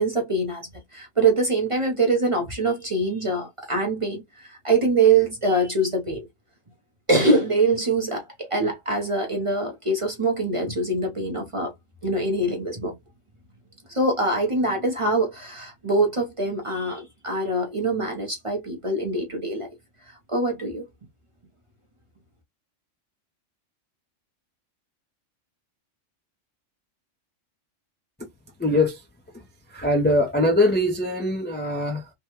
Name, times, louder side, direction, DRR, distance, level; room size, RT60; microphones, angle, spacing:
voice 1, 0.0-6.3 7.1-11.7 12.0-12.9 13.9-19.7 20.3-20.8, right 2 dB, 30° right, 0.7 m, -24 dB
voice 2, 28.6-29.0 29.3-29.4 29.7-32.1, left 1 dB, 15° left, 0.4 m, -22 dB
3.4 x 2.2 x 2.9 m
omnidirectional pair, 1.3 m